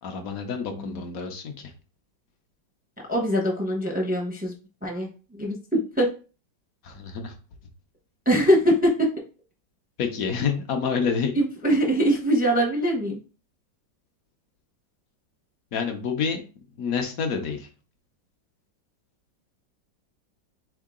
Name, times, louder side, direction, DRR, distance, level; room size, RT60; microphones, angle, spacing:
voice 1, 0.0-1.7 6.8-7.3 10.0-11.4 15.7-16.4 16.8-17.7, left 6 dB, 60° left, 6 dB, 0.9 m, -28 dB
voice 2, 3.1-4.5 4.8-5.1 5.4-6.1 8.3-9.1 11.4-13.2, equal, 10° right, -1 dB, 0.5 m, -22 dB
3.8 x 3.7 x 3.6 m, 0.35 s
omnidirectional pair, 2.1 m